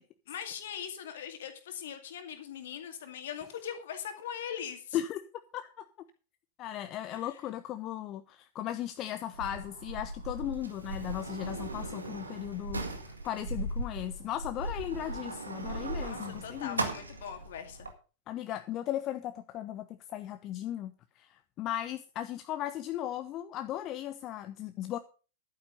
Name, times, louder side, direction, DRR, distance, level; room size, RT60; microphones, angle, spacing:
voice 1, 0.3-5.0 7.1-7.4 16.0-17.9, left 8 dB, 60° left, 6 dB, 2.3 m, -41 dB
voice 2, 5.5-5.8 6.6-16.9 18.3-25.0, left 12 dB, 35° left, 10 dB, 0.7 m, -37 dB
Sliding door, 9.3-17.9, right 2 dB, 80° right, 1.7 m, -38 dB
11.5 x 8.9 x 5.3 m, 0.36 s
figure-of-eight pair, 90°, 0 cm